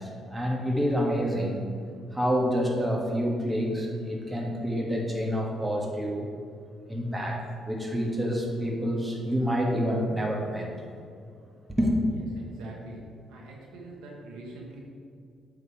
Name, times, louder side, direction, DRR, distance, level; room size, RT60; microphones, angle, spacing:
voice 1, 0.0-1.6 2.1-6.3 6.9-10.7 11.8-11.9, equal, 15° right, -1 dB, 1.4 m, -28 dB
voice 2, 12.1-13.0 13.3-14.8, right 2 dB, 80° right, -1 dB, 1.1 m, -44 dB
8.0 x 3.7 x 4.6 m, 2.4 s
supercardioid pair, 60°, 0 cm